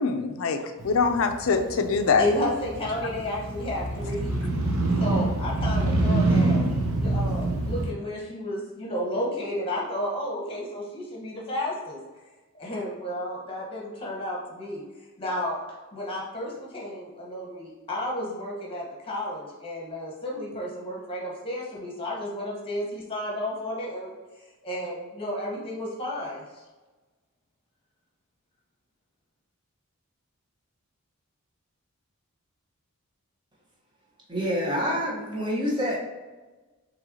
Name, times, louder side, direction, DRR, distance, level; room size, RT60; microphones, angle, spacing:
voice 1, 0.0-2.3, left 4 dB, 65° left, 7 dB, 0.5 m, -24 dB
Motorcycle, 0.8-7.9, right 2 dB, 70° right, 0.7 m, -26 dB
voice 2, 2.2-4.4 5.0-6.6 6.9-12.0 12.5-14.8 15.2-15.6 15.9-24.2 24.6-26.4, left 1 dB, 25° left, -3 dB, 1.1 m, -32 dB
voice 3, 34.3-36.0, equal, 20° right, -4 dB, 1.1 m, -27 dB
5.6 x 3.1 x 2.8 m, 1.2 s
head